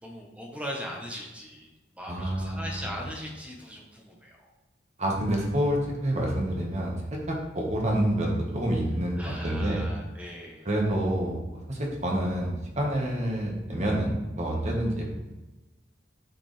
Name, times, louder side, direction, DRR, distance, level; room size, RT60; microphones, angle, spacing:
voice 1, 0.0-4.5 9.2-10.7, equal, 5° right, -1 dB, 1.1 m, -39 dB
voice 2, 2.1-2.8 5.0-9.9 10.6-11.4 11.7-15.1, right 1 dB, 40° right, -1 dB, 1.5 m, -28 dB
9.1 x 5.0 x 3.4 m, 1.1 s
head